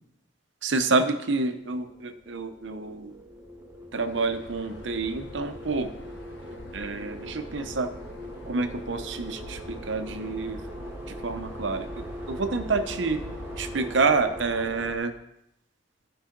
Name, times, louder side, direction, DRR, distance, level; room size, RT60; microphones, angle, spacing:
voice 1, 0.6-3.1 3.9-5.9 6.7-7.9 8.5-10.6 11.1-13.2 13.6-15.1, right 3 dB, 70° right, 9 dB, 0.8 m, -28 dB
sound 1, 1.6-15.0, equal, 10° right, 1.0 m, -41 dB
sound 2, 4.0-13.8, left 2 dB, 60° left, 1.1 m, -46 dB
14.5 x 5.5 x 3.9 m, 0.83 s
head